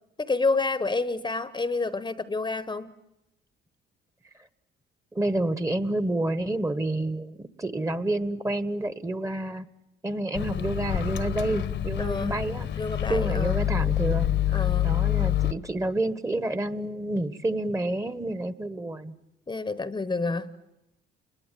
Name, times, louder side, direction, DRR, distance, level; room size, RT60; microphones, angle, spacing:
voice 1, 0.2-2.9 12.0-12.3 12.8-13.6 14.5-15.0 19.5-20.5, left 3 dB, 20° left, 15 dB, 1.0 m, -29 dB
voice 2, 5.1-9.7 10.0-12.7 13.1-19.1, right 1 dB, 15° right, 14 dB, 1.3 m, -29 dB
Microwave oven, 10.3-15.5, left 12 dB, 65° left, 1.2 m, -26 dB
29.0 x 21.0 x 9.2 m, 0.93 s
cardioid pair, 90°, 20 cm